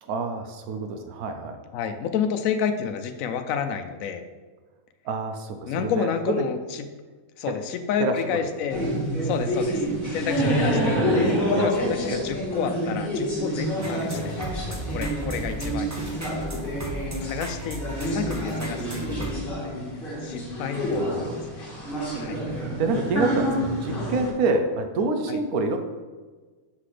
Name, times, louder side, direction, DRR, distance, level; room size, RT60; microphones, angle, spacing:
voice 1, 0.0-1.6 5.0-6.4 8.0-8.1 11.5-12.3 20.9-21.3 22.5-25.8, right 3 dB, 85° right, 6 dB, 1.1 m, -27 dB
voice 2, 1.7-4.2 5.7-6.6 7.4-8.8 9.2-9.8 10.1-14.4 14.7-16.6 17.2-19.8 20.2-21.7 22.2-22.4 25.3-25.4, left 7 dB, 70° left, 7 dB, 1.0 m, -30 dB
sound 1, 8.7-24.3, equal, 40° left, 1.6 m, -28 dB
sound 2, 13.8-19.3, right 1 dB, 30° right, 0.3 m, -35 dB
5.9 x 5.8 x 3.3 m, 1.4 s
omnidirectional pair, 1.5 m